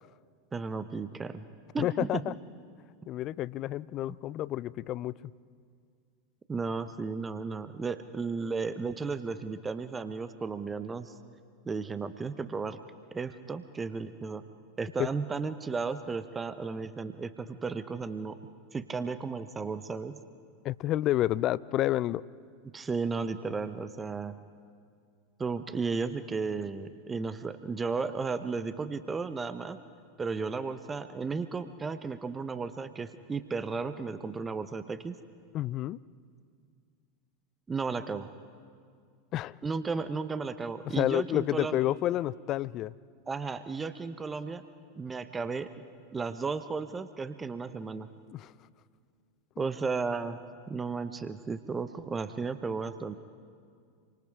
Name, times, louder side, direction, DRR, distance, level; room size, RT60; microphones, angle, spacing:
voice 1, 0.5-1.4 1.7-2.2 6.5-11.1 11.7-12.8 13.1-14.4 14.8-18.4 18.7-20.2 22.7-24.3 25.4-29.8 30.2-35.2 37.7-38.3 39.6-41.8 43.3-44.6 45.0-45.7 46.1-48.1 49.6-50.4 50.7-53.2, right 4 dB, 20° right, 12 dB, 1.0 m, -34 dB
voice 2, 1.8-2.3 3.1-5.3 15.0-15.1 20.6-22.2 35.5-36.0 39.3-39.6 40.9-42.9 48.3-48.5 49.6-49.7, left 14 dB, 40° left, 20 dB, 0.5 m, -30 dB
28.0 x 24.5 x 4.9 m, 2.2 s
figure-of-eight pair, 85°, 0 cm